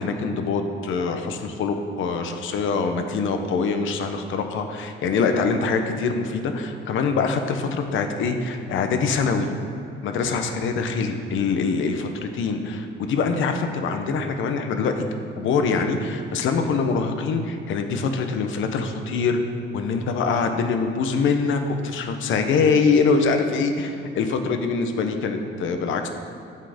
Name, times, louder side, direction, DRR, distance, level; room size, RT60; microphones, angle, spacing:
voice 1, 0.0-9.5 10.0-15.0 15.4-19.4 19.7-26.1, left 4 dB, 80° left, 6 dB, 1.0 m, -24 dB
9.6 x 7.7 x 5.1 m, 2.7 s
cardioid pair, 90°, 20 cm